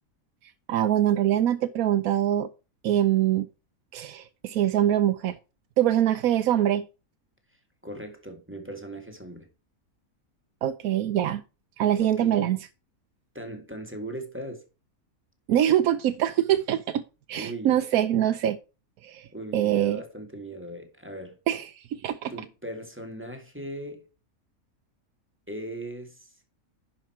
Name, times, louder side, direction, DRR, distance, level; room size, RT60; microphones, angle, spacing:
voice 1, 0.7-2.5 2.8-3.4 3.9-5.4 5.8-6.9 10.6-11.4 11.8-12.6 15.5-17.0 17.3-18.6 19.0-19.3 19.5-20.0 21.5-22.3, right 11 dB, 90° right, 1.1 m, -24 dB
voice 2, 7.8-9.5 12.0-12.5 13.3-14.6 17.4-17.8 19.3-21.4 22.3-24.0 25.5-26.3, right 1 dB, 10° right, 1.9 m, -38 dB
10.5 x 5.5 x 4.5 m
omnidirectional pair, 1.5 m